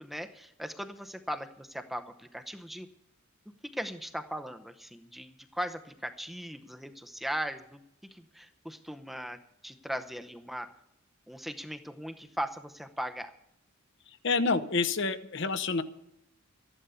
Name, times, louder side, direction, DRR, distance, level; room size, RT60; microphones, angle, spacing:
voice 1, 0.0-2.9 3.7-7.8 8.1-10.7 11.3-13.3, equal, ahead, 7 dB, 0.7 m, -38 dB
voice 2, 14.2-15.8, left 4 dB, 60° left, 11 dB, 0.9 m, -28 dB
13.0 x 11.0 x 6.9 m, 0.79 s
head